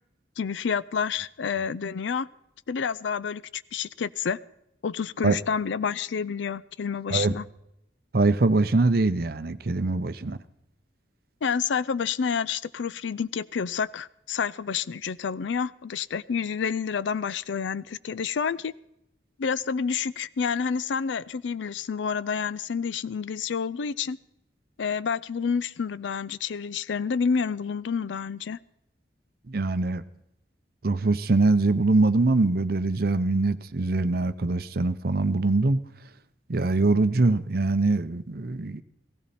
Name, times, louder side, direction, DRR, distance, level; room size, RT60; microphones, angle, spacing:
voice 1, 0.4-2.3 2.7-4.4 4.8-7.4 11.4-18.7 19.4-24.2 24.8-28.6, left 6 dB, 80° left, 0.5 m, -29 dB
voice 2, 8.1-10.4 29.5-30.0 30.8-35.8 36.5-38.8, right 3 dB, 55° right, 0.6 m, -23 dB
16.5 x 16.0 x 4.2 m
head